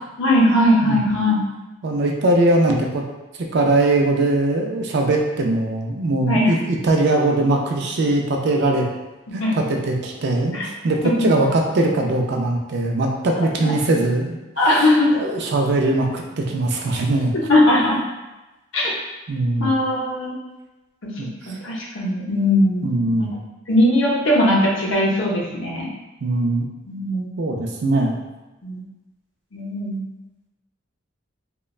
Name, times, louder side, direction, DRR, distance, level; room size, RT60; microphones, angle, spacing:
voice 1, 0.2-1.4 6.3-6.5 9.4-9.6 10.5-10.6 11.0-11.3 13.6-13.7 14.6-15.1 17.3-18.0 18.7-18.9 19.6-20.3 21.0-21.1 21.5-23.3 23.7-25.9 26.9-27.3 28.6-28.8 29.5-30.0, left 1 dB, 65° left, -3 dB, 0.6 m, -19 dB
voice 2, 1.8-3.0 3.5-8.9 9.3-17.3 19.3-19.7 21.2-21.6 22.8-23.3 26.2-26.6 27.4-28.2, right 2 dB, 50° right, 1 dB, 0.3 m, -21 dB
3.0 x 2.2 x 2.3 m, 1.1 s
head